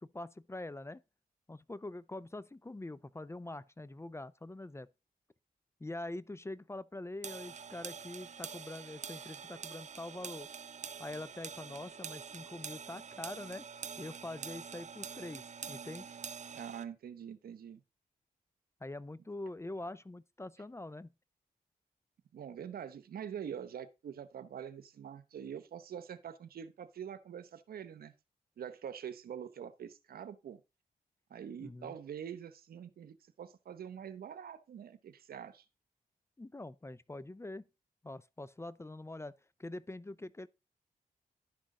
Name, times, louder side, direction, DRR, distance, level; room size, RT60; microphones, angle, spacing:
voice 1, 0.0-1.0 1.5-4.9 5.8-10.5 11.0-13.7 14.0-15.4 15.7-16.1 18.8-21.1 31.6-32.0 36.4-37.6 38.0-40.5, left 2 dB, 15° left, 0.5 m, -44 dB
sound 1, 7.2-16.8, right 6 dB, 50° right, 0.7 m, -46 dB
voice 2, 16.5-17.8 22.3-28.1 28.6-30.6 31.3-35.6, right 8 dB, 80° right, 0.9 m, -45 dB
11.0 x 6.2 x 3.7 m
cardioid pair, 60°, 15 cm